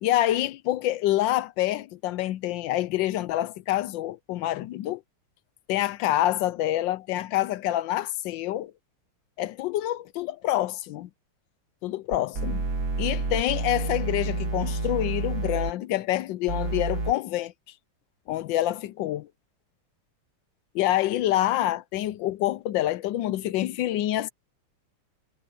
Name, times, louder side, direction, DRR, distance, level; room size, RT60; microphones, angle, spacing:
voice 1, 0.0-5.0 5.7-8.7 9.4-11.1 11.8-12.7 13.0-17.5 18.3-19.3 20.7-24.3, left 14 dB, 75° left, 1.1 m, -27 dB
sound 1, 12.1-15.7 16.5-17.1, right 3 dB, 50° right, 2.7 m, -29 dB
omnidirectional pair, 2.3 m